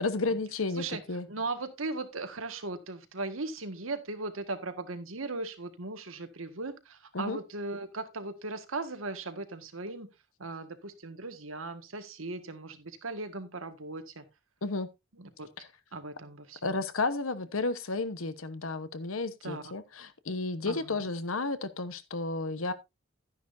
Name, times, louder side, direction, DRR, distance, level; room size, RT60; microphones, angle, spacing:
voice 1, 0.0-1.3 7.1-7.4 14.6-14.9 16.6-22.7, left 3 dB, 90° left, 1.1 m, -32 dB
voice 2, 1.3-10.1 10.4-14.2 15.2-15.5 15.9-16.8 19.4-19.6 20.7-21.0, right 3 dB, 85° right, 1.7 m, -38 dB
12.0 x 10.0 x 2.6 m
head